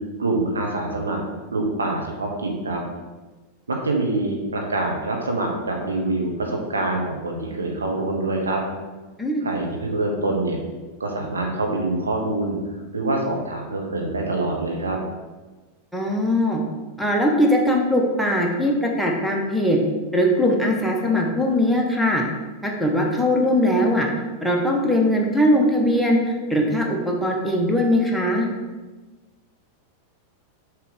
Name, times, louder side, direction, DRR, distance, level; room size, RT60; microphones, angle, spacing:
voice 1, 0.2-1.2 1.5-2.8 3.7-8.6 9.4-10.6 11.0-12.5 12.9-15.0, right 2 dB, 75° right, 0 dB, 1.1 m, -25 dB
voice 2, 15.9-16.6 17.0-19.8 20.1-22.2 22.6-24.1 24.4-28.5, left 1 dB, ahead, -1 dB, 1.1 m, -20 dB
6.6 x 3.3 x 5.2 m, 1.2 s
figure-of-eight pair, 90°, 0 cm